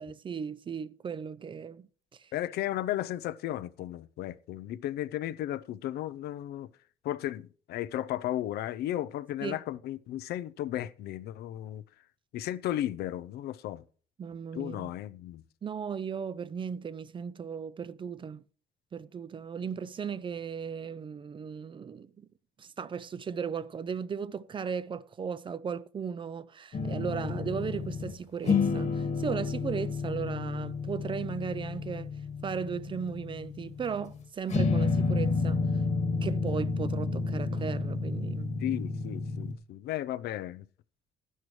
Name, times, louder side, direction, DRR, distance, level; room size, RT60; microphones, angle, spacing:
voice 1, 0.0-2.3 9.4-9.6 14.2-14.9 15.6-18.4 18.9-22.3 22.6-32.1 32.4-35.6 36.2-38.5, right 6 dB, 30° right, 0.5 m, -36 dB
voice 2, 2.3-6.7 7.0-11.8 12.3-13.8 14.5-15.4 27.2-27.4 38.6-40.6, left 13 dB, 70° left, 0.6 m, -34 dB
sound 1, 26.7-28.2 28.4-34.2 34.5-39.5, left 4 dB, 45° left, 1.6 m, -30 dB
12.0 x 11.0 x 3.2 m
cardioid pair, 110°, 17 cm